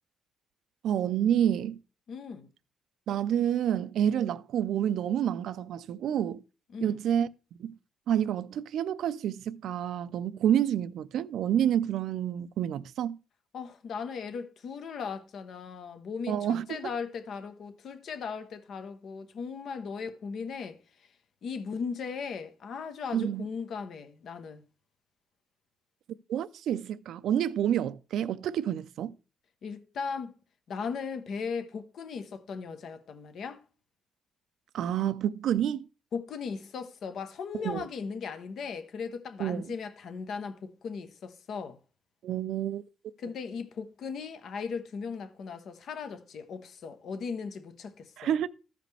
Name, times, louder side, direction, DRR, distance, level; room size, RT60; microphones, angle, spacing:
voice 1, 0.8-1.8 3.1-6.4 6.8-7.3 7.6-7.8 8.1-13.2 16.3-16.9 23.1-23.4 26.3-29.1 34.7-35.9 37.5-37.9 39.4-39.7 42.2-42.8 48.2-48.5, right 10 dB, 75° right, 0.4 m, -28 dB
voice 2, 2.1-2.5 6.7-7.0 13.5-20.8 21.4-24.6 29.6-30.3 30.7-33.6 36.1-41.8 43.2-48.3, left 5 dB, 65° left, 0.9 m, -37 dB
14.0 x 5.1 x 3.3 m
cardioid pair, 90°, 0 cm